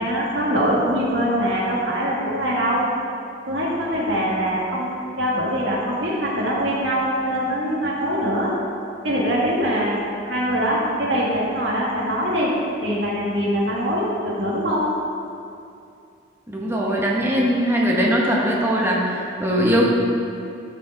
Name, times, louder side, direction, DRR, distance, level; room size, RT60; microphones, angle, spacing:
voice 1, 0.0-2.9 3.5-8.5 9.0-10.0 10.2-12.5 12.8-14.9, equal, 85° right, -5 dB, 2.1 m, -23 dB
voice 2, 16.5-19.9, equal, 15° right, -4 dB, 1.2 m, -20 dB
13.0 x 5.2 x 4.0 m, 2.5 s
head